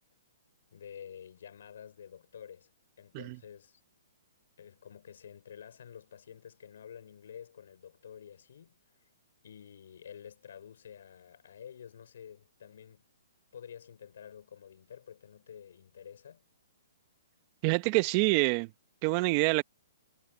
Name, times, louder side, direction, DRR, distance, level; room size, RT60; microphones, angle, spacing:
voice 1, 0.7-2.7 3.0-3.8 4.6-9.1 9.4-13.0 13.5-16.4, left 8 dB, 70° left, 5.1 m, -50 dB
voice 2, 17.6-18.7 19.0-19.6, right 25 dB, 35° right, 1.3 m, -26 dB
hypercardioid pair, 140°, 0 cm